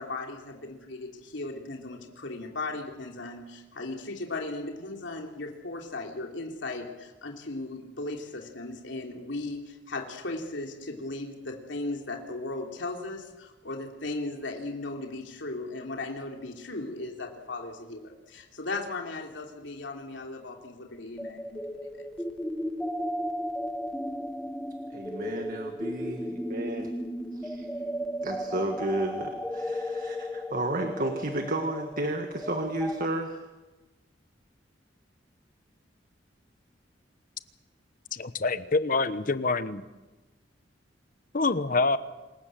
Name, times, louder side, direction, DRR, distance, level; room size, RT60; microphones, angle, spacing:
voice 1, 0.0-22.0, left 2 dB, 75° left, 2 dB, 3.1 m, -37 dB
sound 1, 21.2-33.1, equal, 5° left, 1.1 m, -35 dB
voice 2, 24.9-26.9 28.2-33.4, right 1 dB, 45° right, 4 dB, 1.7 m, -32 dB
voice 3, 38.1-39.8 41.3-42.0, left 3 dB, 45° left, 13 dB, 1.1 m, -26 dB
27.0 x 17.0 x 7.6 m, 1.1 s
head